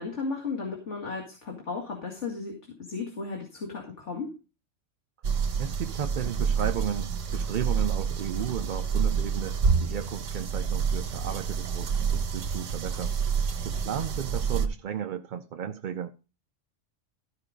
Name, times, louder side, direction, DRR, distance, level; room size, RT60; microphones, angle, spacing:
voice 1, 0.0-2.5 2.8-4.3, left 4 dB, 70° left, 2.4 m, -34 dB
sound 1, 5.2-14.7, right 6 dB, 90° right, 1.3 m, -28 dB
voice 2, 5.3-16.1, right 9 dB, 55° right, 0.6 m, -34 dB
14.0 x 4.9 x 5.1 m
omnidirectional pair, 1.3 m